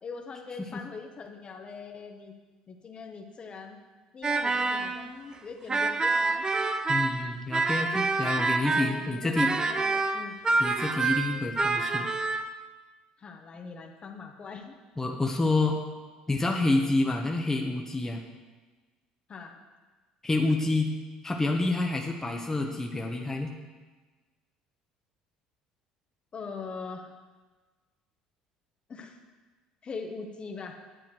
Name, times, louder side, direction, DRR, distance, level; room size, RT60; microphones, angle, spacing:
voice 1, 0.0-2.3 2.7-3.8 4.1-6.4 7.7-7.8 8.7-10.4 13.2-14.7 19.3-19.6 26.3-27.1 28.9-29.2 29.8-30.8, left 4 dB, 40° left, 3 dB, 1.3 m, -41 dB
sound 1, 4.2-5.1 5.7-9.1 9.3-12.5, right 3 dB, 25° right, 0.7 m, -27 dB
voice 2, 6.9-9.5 10.6-12.1 15.0-15.8 16.3-18.2 20.2-20.9 21.2-23.5, left 2 dB, 15° left, 1 dB, 1.2 m, -28 dB
10.0 x 8.5 x 4.6 m, 1.3 s
hypercardioid pair, 70°, 3 cm